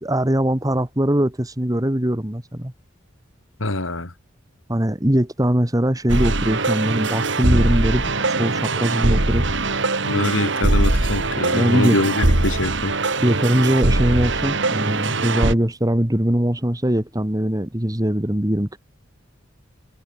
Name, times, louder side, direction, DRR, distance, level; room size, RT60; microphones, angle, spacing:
voice 1, 0.0-2.7 4.7-9.5 11.5-12.0 13.2-18.8, right 1 dB, 20° right, 1.8 m, -21 dB
voice 2, 3.6-4.1 10.1-12.9, left 2 dB, 85° left, 3.0 m, -24 dB
sound 1, 6.1-15.5, right 2 dB, 65° right, 2.7 m, -21 dB
head